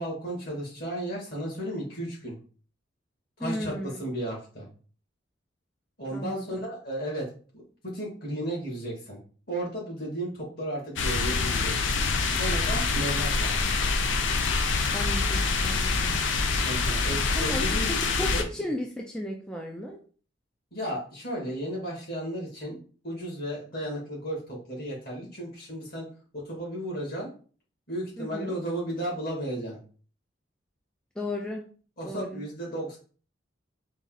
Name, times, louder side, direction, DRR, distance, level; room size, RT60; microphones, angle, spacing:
voice 1, 0.0-2.4 3.4-4.7 6.0-7.2 7.5-7.6 7.9-9.2 9.5-11.7 12.4-13.6 16.6-17.9 18.3-18.4 20.7-22.8 23.0-26.1 26.5-27.3 27.9-29.8 32.0-33.0, right 1 dB, 50° left, -3 dB, 2.0 m, -34 dB
voice 2, 3.4-4.0 6.1-6.6 14.9-16.2 17.4-17.8 18.1-20.0 28.2-28.5 31.2-31.7 32.0-32.4, left 1 dB, 5° left, 0 dB, 0.4 m, -35 dB
sound 1, 11.0-18.4, left 4 dB, 70° left, 0.5 m, -26 dB
4.1 x 2.4 x 3.9 m, 0.40 s
head